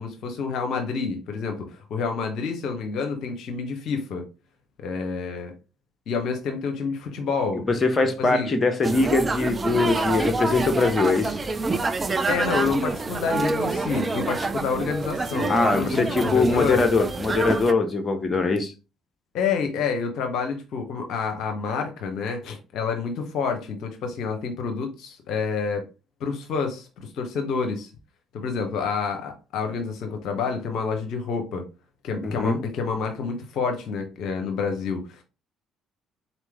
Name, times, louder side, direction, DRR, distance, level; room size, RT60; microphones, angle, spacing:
voice 1, 0.0-4.3 4.8-5.5 6.1-7.7 8.2-8.5 12.3-16.9 19.3-25.8 26.2-27.9 28.3-31.6 32.0-35.2, left 5 dB, 60° left, 0.8 m, -28 dB
voice 2, 7.7-11.4 15.5-18.7 32.2-32.6, left 3 dB, 35° left, 0.9 m, -22 dB
sound 1, 8.8-17.7, right 3 dB, 30° right, 0.6 m, -27 dB
4.1 x 3.0 x 3.5 m
hypercardioid pair, 50°, 0 cm